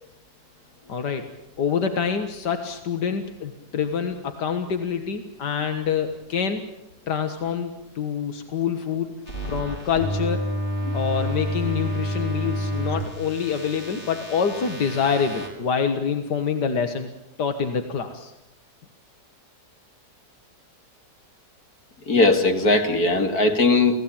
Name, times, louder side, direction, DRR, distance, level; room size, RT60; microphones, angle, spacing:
voice 1, 0.9-1.3 1.6-6.6 7.1-9.1 9.5-10.4 10.9-17.1 17.4-18.3, left 6 dB, 85° left, 7 dB, 2.1 m, -26 dB
sound 1, 9.3-15.5, equal, 45° left, 5.3 m, -29 dB
voice 2, 22.1-24.0, left 2 dB, 65° left, 5 dB, 3.0 m, -19 dB
29.0 x 18.5 x 8.9 m, 0.88 s
omnidirectional pair, 1.7 m